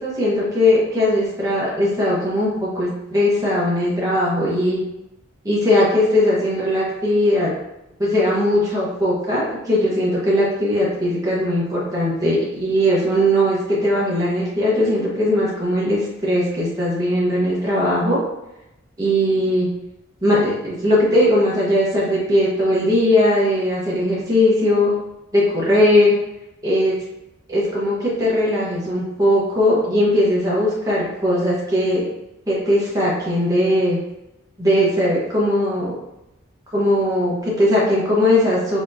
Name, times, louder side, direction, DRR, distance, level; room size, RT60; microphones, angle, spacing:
voice 1, 0.0-4.8 5.4-7.5 8.0-18.2 19.0-19.7 20.2-24.9 25.3-26.2 26.6-27.0 27.5-32.0 32.5-34.0 34.6-35.9 36.7-38.8, left 1 dB, 15° right, -7 dB, 0.9 m, -19 dB
4.1 x 2.9 x 2.6 m, 0.90 s
head